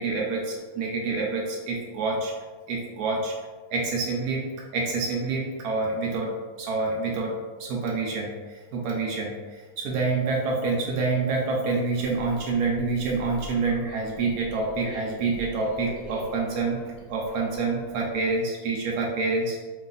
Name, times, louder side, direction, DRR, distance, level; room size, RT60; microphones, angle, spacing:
voice 1, 0.0-2.3 2.7-3.3 3.7-4.4 4.7-6.3 6.6-7.3 7.6-19.6, right 3 dB, 85° right, -2 dB, 0.8 m, -27 dB
sound 1, 11.9-18.4, right 1 dB, 15° left, 0.9 m, -42 dB
3.1 x 2.3 x 3.8 m, 1.4 s
omnidirectional pair, 2.1 m